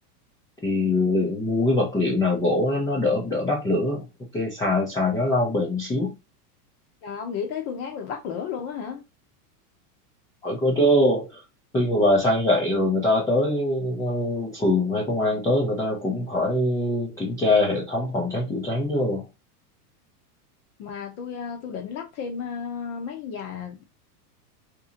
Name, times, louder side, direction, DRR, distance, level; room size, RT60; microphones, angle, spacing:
voice 1, 0.6-4.0 4.3-6.1 10.4-11.4 11.7-19.2, left 1 dB, 10° left, 0.5 m, -23 dB
voice 2, 7.0-9.0 20.8-23.8, left 6 dB, 40° left, 0.8 m, -33 dB
2.9 x 2.7 x 3.6 m
supercardioid pair, 145°, 46 cm